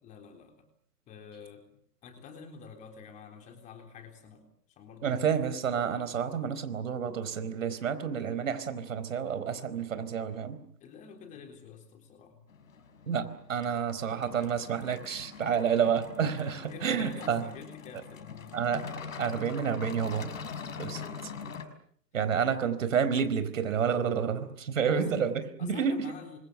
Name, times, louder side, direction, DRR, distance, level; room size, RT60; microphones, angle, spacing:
voice 1, 0.0-0.7 1.1-5.2 10.8-12.4 15.6-15.9 16.6-18.6 21.0-21.5 24.8-25.1 25.6-26.4, left 6 dB, 15° left, 5 dB, 3.7 m, -48 dB
voice 2, 5.0-10.6 13.1-17.4 18.5-18.9 19.2-20.3 20.8-21.0 22.1-26.0, right 7 dB, 50° right, 12 dB, 4.5 m, -29 dB
sound 1, 12.5-21.7, left 6 dB, 55° left, 5.6 m, -43 dB
29.0 x 26.0 x 6.9 m, 0.62 s
figure-of-eight pair, 140°, 49 cm